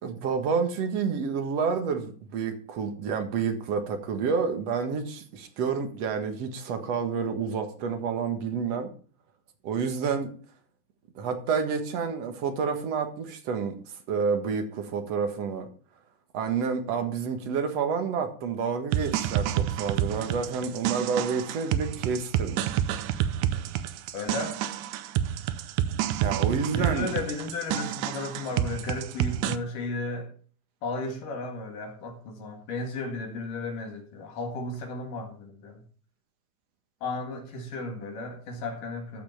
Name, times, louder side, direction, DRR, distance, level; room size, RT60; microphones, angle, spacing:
voice 1, 0.0-8.9 9.6-10.3 11.2-15.7 16.3-22.6 26.2-27.1, right 6 dB, 55° right, 2.3 m, -29 dB
sound 1, 18.9-29.6, right 11 dB, 75° right, 1.9 m, -29 dB
voice 2, 24.1-24.6 26.7-30.3 30.8-35.8 37.0-39.2, left 2 dB, 65° left, 3.4 m, -34 dB
14.0 x 5.9 x 5.7 m
omnidirectional pair, 4.2 m